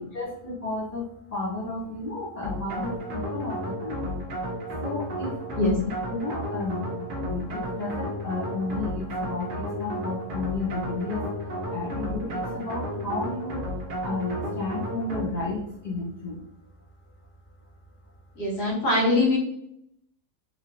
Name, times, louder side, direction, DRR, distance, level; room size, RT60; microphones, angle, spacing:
voice 1, 0.1-4.2 4.8-5.4 5.7-13.6 14.0-16.4, left 3 dB, 55° left, -5 dB, 0.4 m, -33 dB
sound 1, 2.4-15.6, equal, 55° right, 0.5 m, -33 dB
voice 2, 18.4-19.4, left 2 dB, 75° left, -3 dB, 1.7 m, -22 dB
3.4 x 2.5 x 2.8 m, 0.74 s
omnidirectional pair, 1.7 m